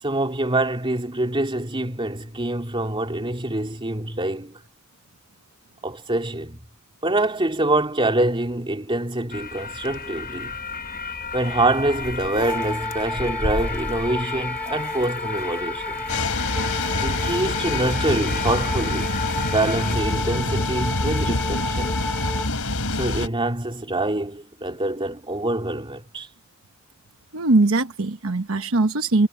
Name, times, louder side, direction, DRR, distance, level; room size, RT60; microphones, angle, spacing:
voice 1, 0.0-4.6 5.8-6.6 7.0-10.6 11.3-16.1 17.0-19.2 19.5-22.0 22.9-26.3, right 2 dB, 25° right, 3.1 m, -25 dB
sound 1, 9.3-20.0, left 4 dB, 45° left, 1.2 m, -32 dB
sound 2, 12.4-22.5, left 1 dB, 5° left, 3.0 m, -32 dB
sound 3, 16.1-23.3, left 2 dB, 75° left, 3.7 m, -26 dB
voice 2, 27.3-29.3, right 2 dB, 70° right, 1.1 m, -20 dB
head